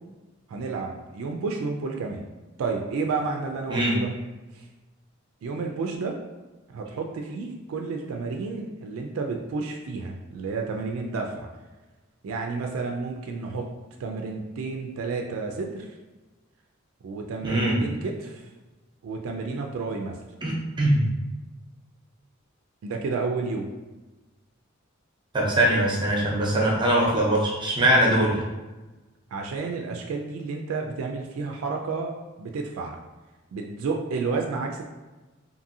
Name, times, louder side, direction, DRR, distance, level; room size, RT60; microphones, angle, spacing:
voice 1, 0.5-2.2 2.6-4.1 4.5-4.6 5.4-6.2 6.7-11.5 12.2-13.7 14.0-15.9 17.0-18.5 19.0-20.2 22.8-23.7 28.0-28.2 29.3-33.0 33.5-34.9, right 4 dB, 85° right, 2 dB, 0.3 m, -31 dB
voice 2, 17.4-17.8 20.4-21.1 25.3-28.4, right 1 dB, 25° right, -3 dB, 0.6 m, -22 dB
2.6 x 2.6 x 2.6 m, 1.2 s
head